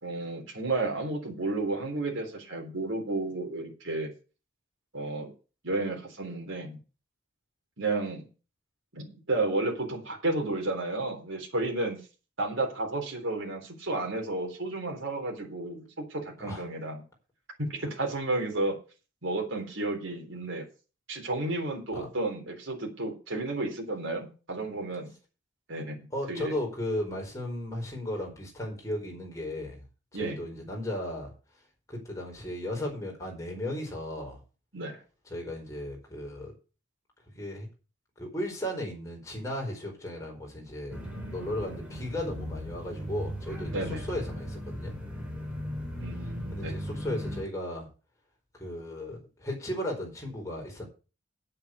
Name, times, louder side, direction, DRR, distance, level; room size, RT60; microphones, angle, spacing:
voice 1, 0.0-4.1 4.9-5.3 5.6-6.8 7.8-8.3 8.9-12.0 12.4-17.0 17.6-18.8 19.2-20.6 21.1-25.1 25.7-26.5 30.1-30.4 34.7-35.0 43.7-44.1 46.0-46.8, right 2 dB, 75° right, 1 dB, 3.7 m, -32 dB
voice 2, 26.1-29.8 30.2-31.3 31.9-34.4 35.3-36.5 37.3-37.7 38.2-41.0 41.3-45.0 46.5-47.9 48.5-50.8, left 1 dB, 15° left, -1 dB, 4.7 m, -35 dB
sound 1, 40.9-47.4, equal, 5° right, 3.4 m, -37 dB
8.7 x 7.7 x 8.1 m, 0.34 s
head